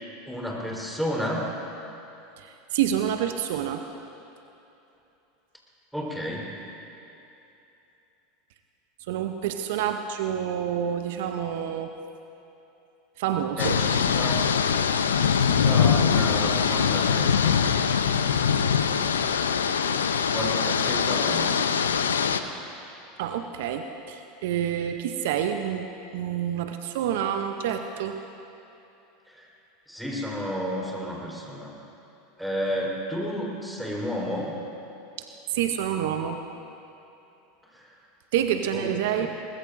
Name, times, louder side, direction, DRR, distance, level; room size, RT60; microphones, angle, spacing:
voice 1, 0.3-1.5 5.9-6.5 13.6-14.5 15.2-17.6 20.3-21.6 29.3-29.5 29.9-31.7 32.4-34.6 37.7-37.9 38.7-38.9 39.2-39.3, equal, ahead, -3 dB, 4.0 m, -31 dB
voice 2, 2.4-3.8 9.1-11.9 13.2-13.8 23.2-28.2 35.2-36.4 38.3-39.3, right 9 dB, 65° right, 6 dB, 0.7 m, -28 dB
sound 1, 13.6-22.4, left 7 dB, 80° left, 0.6 m, -23 dB
22.5 x 20.0 x 2.6 m, 2.9 s
hypercardioid pair, 85°, 0 cm